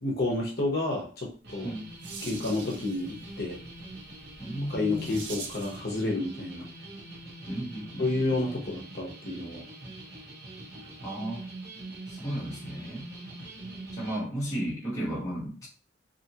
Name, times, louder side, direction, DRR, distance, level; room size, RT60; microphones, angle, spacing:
voice 1, 0.0-1.7 2.2-3.6 4.7-6.7 8.0-9.6, left 2 dB, 55° left, -1 dB, 0.8 m, -30 dB
sound 1, 1.4-14.2, right 2 dB, 60° right, 0.9 m, -44 dB
sound 2, 1.4-5.9, right 5 dB, 85° right, 0.6 m, -45 dB
voice 2, 4.4-5.1 7.5-8.1 11.0-11.4 12.1-13.1 13.9-15.7, right 1 dB, 20° left, -7 dB, 0.9 m, -34 dB
2.8 x 2.5 x 2.7 m, 0.38 s
head